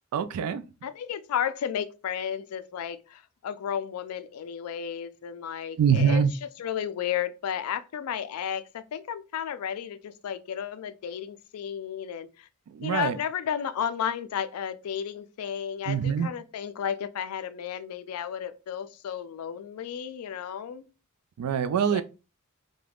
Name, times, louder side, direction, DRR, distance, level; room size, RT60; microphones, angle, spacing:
voice 1, 0.1-0.7 5.8-6.3 12.7-13.2 15.9-16.3 21.4-22.0, right 7 dB, 85° right, 0.3 m, -24 dB
voice 2, 0.8-6.2 6.6-12.5 12.8-20.8 21.9-22.0, left 8 dB, 75° left, 0.3 m, -33 dB
2.4 x 2.1 x 3.3 m
head